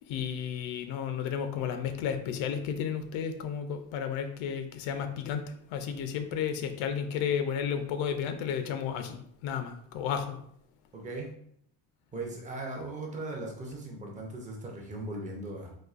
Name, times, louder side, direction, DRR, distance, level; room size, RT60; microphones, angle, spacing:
voice 1, 0.1-10.4, left 8 dB, 90° left, 8 dB, 0.6 m, -33 dB
voice 2, 10.9-11.3 12.1-15.8, right 2 dB, 20° right, -1 dB, 0.4 m, -38 dB
4.2 x 2.6 x 2.4 m, 0.68 s
cardioid pair, 180°, 46 cm